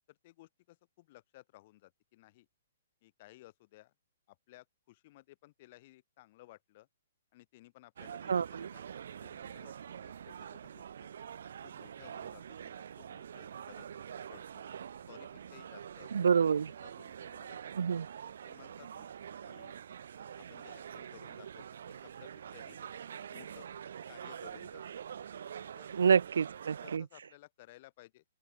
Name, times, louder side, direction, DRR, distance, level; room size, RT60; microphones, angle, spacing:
voice 1, 0.1-2.5 3.0-3.9 4.3-6.9 7.3-9.7 10.0-11.1 11.6-13.9 14.3-14.6 15.1-16.3 16.7-17.8 18.4-19.1 19.4-19.7 20.3-22.8 23.3-23.7 24.1-24.8 25.7-25.9 26.8-28.2, left 18 dB, 30° left, 3.8 m, -58 dB
sound 1, 8.0-27.0, right 8 dB, 60° right, 4.2 m, -46 dB
voice 2, 8.3-8.7 16.1-16.7 17.8-18.1 25.9-27.0, right 6 dB, 85° right, 0.3 m, -27 dB
open air
hypercardioid pair, 175°, 0 cm